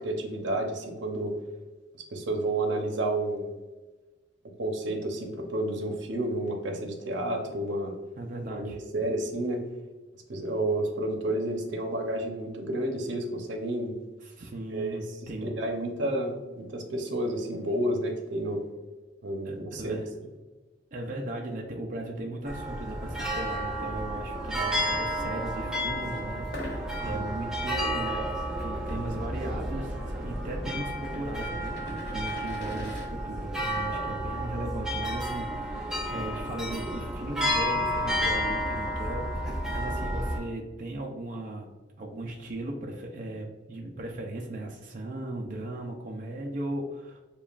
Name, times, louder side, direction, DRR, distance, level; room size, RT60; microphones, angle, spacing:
voice 1, 0.0-1.3 1.9-3.5 4.6-7.9 8.5-9.6 10.3-13.9 14.7-15.0 15.4-18.6 19.2-20.0, right 1 dB, 80° right, 3 dB, 0.7 m, -30 dB
voice 2, 8.2-8.8 14.2-15.6 19.4-20.1 20.9-47.2, right 1 dB, 45° right, -1 dB, 0.5 m, -37 dB
sound 1, 22.5-40.4, equal, 5° right, 0.7 m, -31 dB
sound 2, 26.4-33.1, left 2 dB, 55° left, 1.2 m, -45 dB
7.1 x 2.4 x 2.4 m, 1.2 s
head